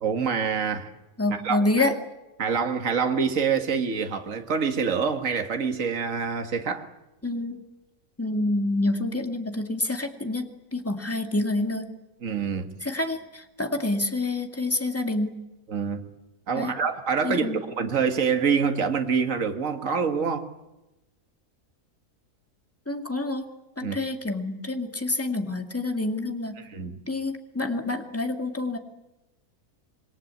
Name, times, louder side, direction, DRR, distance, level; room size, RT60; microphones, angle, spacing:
voice 1, 0.0-0.9 1.3-1.9 2.4-6.9 12.2-12.7 15.7-16.1 16.5-20.5 23.8-24.0 26.7-27.0, right 6 dB, 55° right, 2.1 m, -26 dB
voice 2, 1.2-2.0 7.2-7.6 8.2-11.9 12.8-15.3 16.6-16.7 17.2-17.6 22.9-23.4 23.8-26.6 27.1-28.8, left 2 dB, 10° left, 2.1 m, -27 dB
27.0 x 21.5 x 8.4 m
omnidirectional pair, 1.6 m